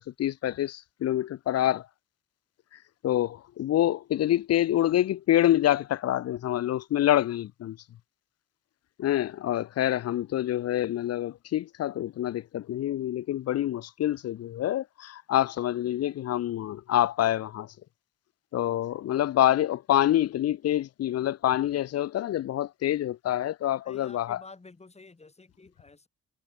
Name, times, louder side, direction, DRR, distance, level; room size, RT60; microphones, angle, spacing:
voice 1, 0.0-1.9 3.0-7.8 9.0-17.7 18.5-24.4, left 12 dB, 55° left, 0.6 m, -26 dB
voice 2, 23.8-26.1, left 3 dB, 20° left, 3.9 m, -50 dB
cardioid pair, 90°, 30 cm